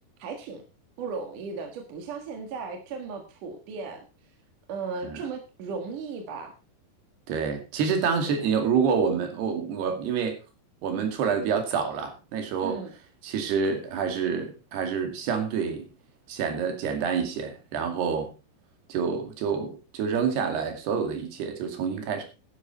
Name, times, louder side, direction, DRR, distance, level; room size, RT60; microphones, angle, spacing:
voice 1, 0.2-0.6 1.0-4.0 4.7-6.5 8.2-8.3 12.6-12.9, right 5 dB, 60° right, 4 dB, 3.0 m, -36 dB
voice 2, 7.3-10.4 10.8-12.8 13.2-15.9 16.3-18.3 18.9-22.2, right 6 dB, 80° right, 6 dB, 4.4 m, -27 dB
12.0 x 10.5 x 4.3 m, 0.30 s
omnidirectional pair, 4.6 m